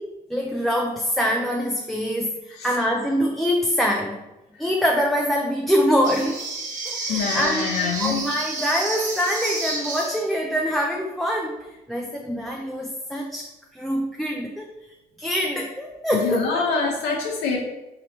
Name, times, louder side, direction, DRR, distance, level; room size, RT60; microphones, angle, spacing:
voice 1, 0.0-4.2 4.6-6.4 6.9-7.7 8.0-14.7 15.2-16.6, equal, ahead, 0 dB, 0.3 m, -24 dB
sound 1, 6.0-10.4, right 2 dB, 50° right, 1.0 m, -30 dB
voice 2, 7.1-8.3 16.1-17.6, left 5 dB, 80° left, -1 dB, 0.7 m, -25 dB
3.1 x 2.9 x 4.1 m, 1.0 s
cardioid pair, 110°, 17 cm